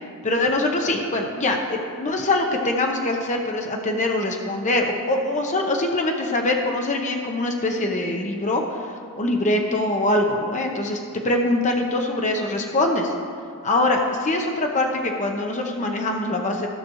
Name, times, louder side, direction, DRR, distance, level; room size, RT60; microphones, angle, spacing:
voice 1, 0.2-8.8 9.2-13.1 13.6-16.7, left 2 dB, 35° left, 2 dB, 0.8 m, -23 dB
15.0 x 6.0 x 3.0 m, 2.2 s
head